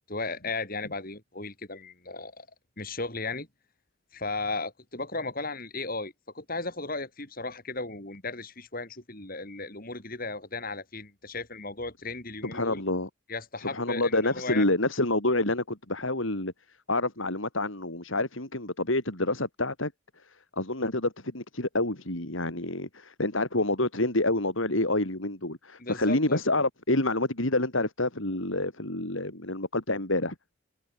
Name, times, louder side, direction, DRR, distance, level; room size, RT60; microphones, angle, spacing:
voice 1, 0.1-2.5 2.8-3.5 4.1-12.8 13.3-14.7 25.8-26.4, left 3 dB, 40° left, 5.2 m, -35 dB
voice 2, 12.4-13.1 13.6-16.5 16.9-19.9 20.6-30.3, left 2 dB, 65° left, 3.9 m, -28 dB
head